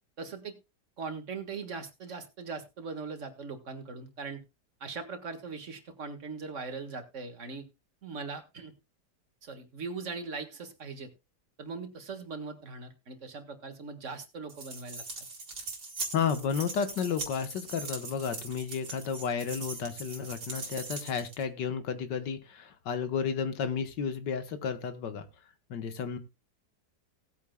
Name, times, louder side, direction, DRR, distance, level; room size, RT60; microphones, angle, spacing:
voice 1, 0.2-0.6 1.0-4.4 4.8-7.7 8.0-8.7 9.4-11.1 11.6-15.0, right 4 dB, 45° right, 7 dB, 1.8 m, -40 dB
sound 1, 14.5-21.4, right 3 dB, 70° right, 2.4 m, -41 dB
voice 2, 16.1-25.3 25.7-26.2, left 6 dB, 90° left, 10 dB, 1.8 m, -32 dB
18.0 x 8.5 x 2.2 m, 0.24 s
omnidirectional pair, 1.8 m